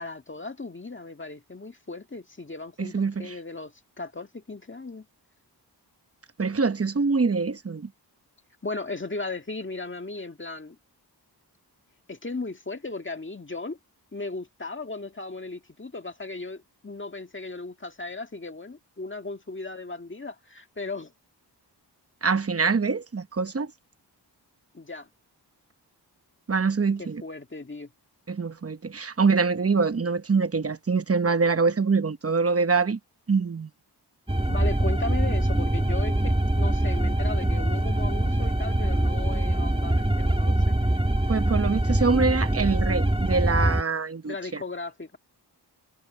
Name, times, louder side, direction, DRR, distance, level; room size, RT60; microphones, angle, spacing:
voice 1, 0.0-5.1 8.6-10.8 12.1-13.8 14.1-21.1 24.7-25.1 27.0-27.9 34.5-40.8 44.3-45.2, left 3 dB, 30° left, 1.7 m, -36 dB
voice 2, 2.8-3.4 6.4-7.9 22.2-23.7 26.5-27.2 28.3-33.0 33.3-33.7 41.3-44.6, right 4 dB, 35° right, 1.0 m, -24 dB
sound 1, 34.3-43.8, right 1 dB, 15° right, 1.8 m, -24 dB
wide cardioid pair, 60°, 42 cm